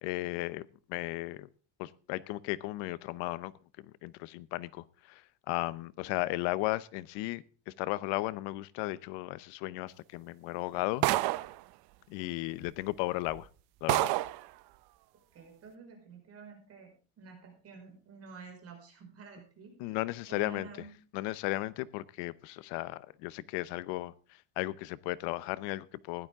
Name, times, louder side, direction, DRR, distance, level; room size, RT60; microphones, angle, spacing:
voice 1, 0.0-1.5 1.8-3.5 3.8-11.0 12.1-13.5 13.8-14.1 19.8-20.7 21.1-26.3, left 18 dB, 90° left, 18 dB, 0.9 m, -35 dB
sound 1, 11.0-11.6 12.6-12.7 13.3-13.4 13.9-14.4, right 18 dB, 65° right, 0.7 m, -28 dB
voice 2, 15.3-16.9 17.2-20.0 20.3-20.9, right 5 dB, 35° right, 2 dB, 5.1 m, -50 dB
15.5 x 12.0 x 3.6 m, 0.38 s
cardioid pair, 165°, 42 cm